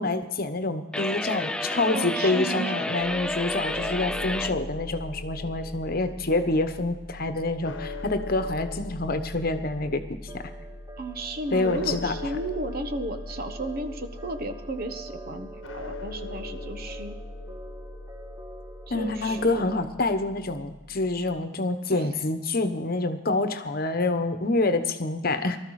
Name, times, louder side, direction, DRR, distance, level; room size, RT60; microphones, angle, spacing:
voice 1, 0.0-10.0 10.3-10.4 11.5-12.1 18.9-25.6, left 2 dB, 50° left, 9 dB, 1.1 m, -27 dB
sound 1, 0.9-4.6, left 1 dB, 5° left, 0.5 m, -30 dB
voice 2, 1.9-2.8 11.0-17.1 18.9-19.7 21.9-22.2, right 2 dB, 50° right, 8 dB, 1.2 m, -34 dB
sound 2, 3.0-21.4, left 2 dB, 90° left, 1.1 m, -40 dB
sound 3, 10.3-19.9, right 2 dB, 15° right, 0.9 m, -45 dB
19.0 x 13.0 x 4.9 m, 1.1 s
head